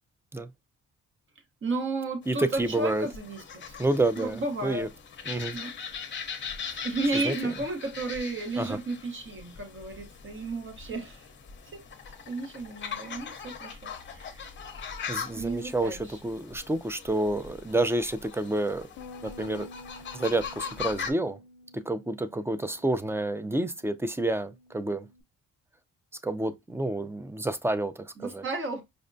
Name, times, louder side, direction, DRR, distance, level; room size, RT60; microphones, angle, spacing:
voice 1, 1.6-3.8 4.2-4.9 5.5-5.7 6.1-6.2 6.8-11.3 11.6-11.8 12.3-14.5 15.3-16.2 28.2-28.8, right 2 dB, 40° right, 1.0 m, -33 dB
sound 1, 2.2-21.1, left 6 dB, 40° left, 0.7 m, -41 dB
voice 2, 2.3-3.1 3.8-4.9 5.3-5.6 6.7-6.8 7.2-7.4 8.6-8.8 15.1-18.9 19.2-19.7 20.1-21.4 21.7-25.1 26.2-28.4, right 2 dB, 10° right, 0.3 m, -29 dB
Bass guitar, 19.0-25.2, left 2 dB, 75° left, 0.4 m, -51 dB
5.1 x 2.1 x 2.5 m
cardioid pair, 90°, 30 cm